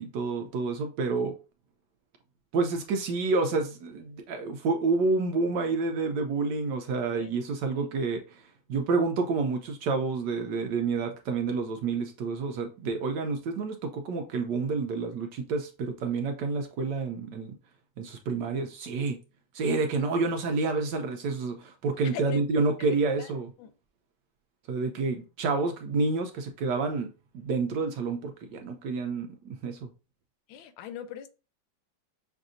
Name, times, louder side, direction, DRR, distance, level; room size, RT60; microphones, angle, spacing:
voice 1, 0.0-1.3 2.5-8.4 8.7-17.5 18.0-19.2 19.5-23.5 24.7-29.9, right 4 dB, 75° right, 1.1 m, -29 dB
voice 2, 22.0-22.4 22.8-23.3 23.6-23.7 30.5-31.3, left 9 dB, 85° left, 1.4 m, -41 dB
6.0 x 2.6 x 2.5 m
omnidirectional pair, 2.2 m